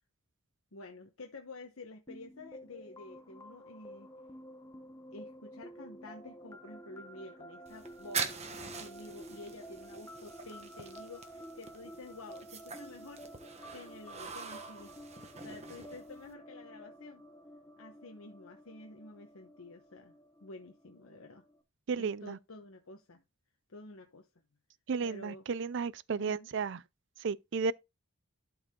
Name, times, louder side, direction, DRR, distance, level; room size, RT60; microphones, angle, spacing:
voice 1, 0.7-4.1 5.1-13.2 13.7-14.9 15.4-17.2 17.8-20.1 20.4-21.4 21.9-23.2 23.7-24.3 25.0-25.4 26.1-26.5, left 2 dB, 80° left, 1.1 m, -50 dB
sound 1, 2.1-21.6, equal, 15° left, 0.8 m, -51 dB
sound 2, 7.7-16.3, right 5 dB, 30° right, 1.2 m, -44 dB
voice 2, 21.9-22.4 24.9-26.8 27.2-27.7, right 5 dB, 60° right, 0.4 m, -33 dB
12.0 x 4.9 x 3.7 m
head